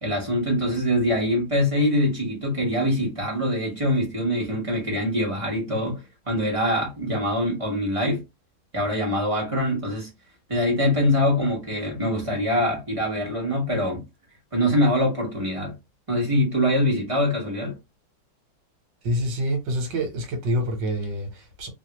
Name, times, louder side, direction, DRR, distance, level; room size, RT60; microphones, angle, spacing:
voice 1, 0.0-8.2 8.7-10.1 10.5-14.0 14.5-15.7 16.1-17.8, left 1 dB, 30° right, 0.6 m, -24 dB
voice 2, 19.0-21.7, equal, 60° right, 1.6 m, -27 dB
3.4 x 2.3 x 2.9 m
omnidirectional pair, 2.3 m